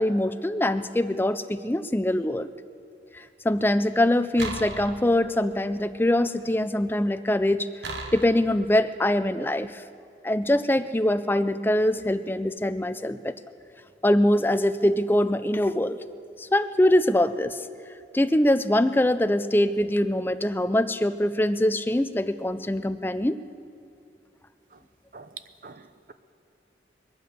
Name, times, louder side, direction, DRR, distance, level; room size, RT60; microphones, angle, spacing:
voice 1, 0.0-2.5 3.1-7.7 8.1-9.8 10.2-13.3 14.0-16.0 16.4-17.7 18.1-23.4, left 1 dB, 10° left, 11 dB, 0.4 m, -23 dB
sound 1, 4.4-5.6 7.8-8.6, right 3 dB, 90° right, 1.3 m, -36 dB
voice 2, 25.1-26.1, right 5 dB, 50° right, 11 dB, 0.7 m, -45 dB
23.0 x 8.4 x 6.8 m, 2.4 s
head